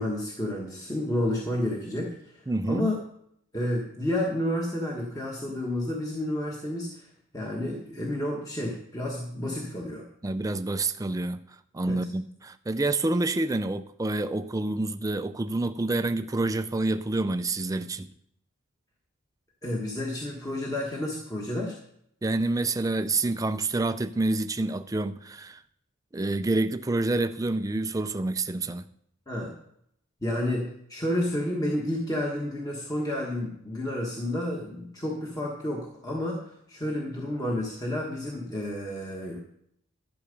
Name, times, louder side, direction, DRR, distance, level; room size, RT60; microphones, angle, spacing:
voice 1, 0.0-3.0 3.5-10.1 11.9-12.0 19.6-21.8 29.3-29.5 30.2-39.4, left 1 dB, 15° left, 1.3 m, -30 dB
voice 2, 2.5-2.9 10.2-11.4 11.7-18.1 22.2-25.6 26.1-28.9, right 2 dB, 15° right, 0.4 m, -28 dB
12.0 x 7.9 x 5.2 m
head